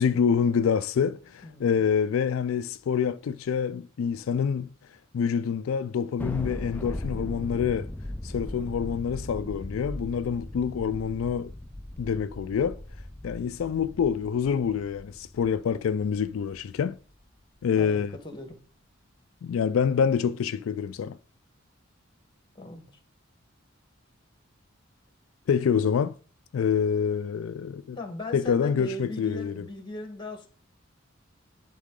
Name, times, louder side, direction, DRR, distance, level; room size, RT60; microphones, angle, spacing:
voice 1, 0.0-4.7 5.1-7.9 8.2-11.5 12.0-12.8 13.2-17.0 17.6-18.1 19.4-21.2 25.5-26.2 26.5-28.0 28.3-29.7, left 7 dB, 90° left, 0.3 m, -26 dB
voice 2, 1.4-1.8 17.8-18.6 22.5-22.9 27.9-30.5, left 1 dB, 25° left, 1.3 m, -38 dB
Thunder, 6.2-16.8, left 1 dB, 10° left, 0.4 m, -38 dB
11.0 x 3.7 x 3.7 m
head